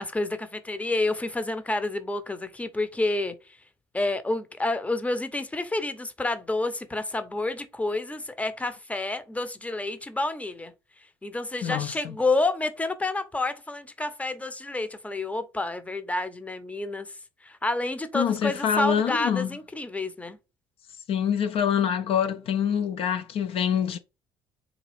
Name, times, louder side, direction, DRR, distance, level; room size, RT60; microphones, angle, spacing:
voice 1, 0.0-3.6 3.9-10.7 11.2-17.1 17.4-20.4, left 2 dB, 10° left, 0.6 m, -29 dB
voice 2, 11.6-12.1 18.1-19.5 21.1-24.0, left 8 dB, 60° left, 0.4 m, -25 dB
3.9 x 2.4 x 3.2 m
hypercardioid pair, 60°, 11 cm